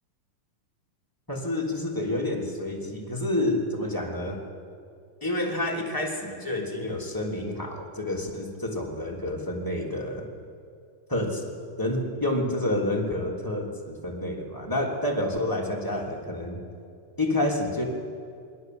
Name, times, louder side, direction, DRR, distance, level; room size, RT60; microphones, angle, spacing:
voice 1, 1.3-4.4 5.2-10.3 11.1-11.5 11.8-16.6 17.2-17.8, left 1 dB, 5° left, -1 dB, 2.8 m, -29 dB
27.5 x 21.5 x 8.0 m, 2.4 s
omnidirectional pair, 3.7 m